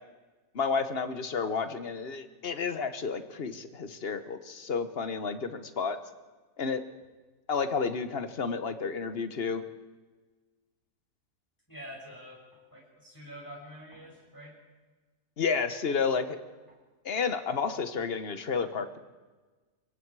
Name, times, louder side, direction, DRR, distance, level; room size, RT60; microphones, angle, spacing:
voice 1, 0.5-6.0 6.6-6.8 7.5-9.6 15.4-16.4 17.0-19.0, left 5 dB, 40° left, 10 dB, 1.2 m, -31 dB
voice 2, 11.7-14.5 16.7-16.8, equal, 10° left, -3 dB, 6.3 m, -47 dB
25.0 x 23.0 x 4.8 m, 1.3 s
omnidirectional pair, 1.7 m